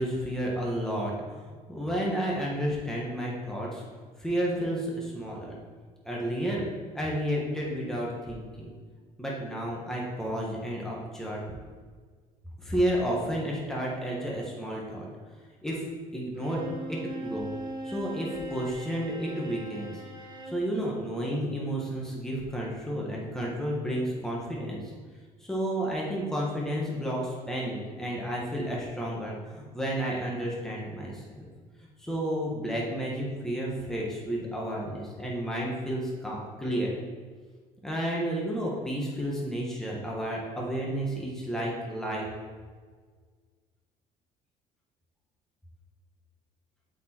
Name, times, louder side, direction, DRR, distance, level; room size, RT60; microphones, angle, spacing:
voice 1, 0.0-3.8 4.2-5.6 6.0-6.6 6.9-8.7 9.2-11.4 12.6-15.1 15.6-15.8 16.1-17.5 17.8-20.0 20.4-24.8 25.4-31.5 32.0-36.9 37.8-42.3, equal, 5° left, -4 dB, 1.4 m, -31 dB
Bowed string instrument, 16.3-20.7, right 1 dB, 30° right, 1.2 m, -40 dB
8.1 x 4.7 x 4.5 m, 1.5 s
cardioid pair, 135°, 15 cm